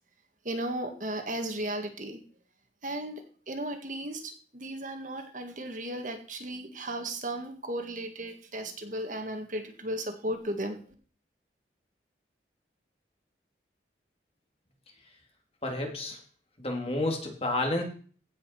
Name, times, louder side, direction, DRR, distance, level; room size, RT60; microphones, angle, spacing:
voice 1, 0.5-2.2 2.8-10.8, right 1 dB, 45° right, 5 dB, 1.9 m, -35 dB
voice 2, 15.6-16.2 16.6-17.8, left 2 dB, 35° left, 3 dB, 2.8 m, -30 dB
16.5 x 5.6 x 6.0 m, 0.42 s
head